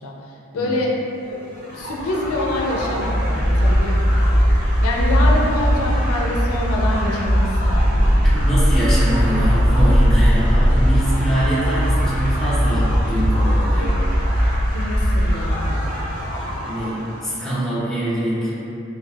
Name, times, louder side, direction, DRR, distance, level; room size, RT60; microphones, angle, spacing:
voice 1, 0.0-0.9 1.2-1.4 1.7-4.2 4.8-7.9 14.7-15.9, left 1 dB, 90° left, -2 dB, 0.4 m, -26 dB
sound 1, 1.5-17.2, equal, 40° right, 0.7 m, -19 dB
voice 2, 8.3-14.0 16.6-18.5, right 1 dB, ahead, -11 dB, 0.5 m, -23 dB
3.3 x 2.2 x 2.3 m, 2.9 s
head